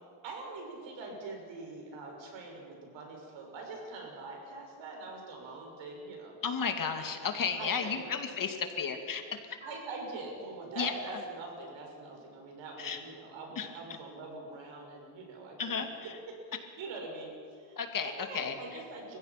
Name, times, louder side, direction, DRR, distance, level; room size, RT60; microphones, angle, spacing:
voice 1, 0.2-6.4 7.6-8.2 9.6-15.6 16.0-16.4 16.8-19.2, right 3 dB, 75° right, 0 dB, 6.4 m, -43 dB
voice 2, 6.4-9.2 10.8-10.9 12.8-13.0 13.6-13.7 15.6-15.9 17.8-18.5, left 6 dB, 45° left, 5 dB, 2.2 m, -33 dB
30.0 x 15.5 x 5.8 m, 2.2 s
cardioid pair, 100°, 45 cm